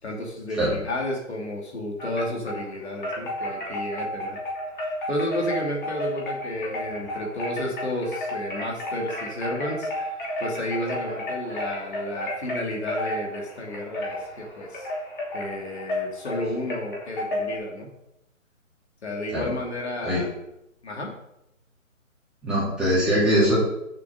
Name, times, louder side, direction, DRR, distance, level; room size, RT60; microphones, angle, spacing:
voice 1, 0.0-4.4 5.1-9.9 10.4-14.9 15.3-17.9 19.0-20.3 20.8-21.1, left 1 dB, 55° left, -1 dB, 2.8 m, -31 dB
Wind chime, 2.0-2.7 3.0-17.6, left 1 dB, 40° left, 3.0 m, -32 dB
voice 2, 22.4-23.5, equal, ahead, -11 dB, 2.6 m, -21 dB
7.4 x 6.0 x 6.5 m, 0.83 s
hypercardioid pair, 165°, 40 cm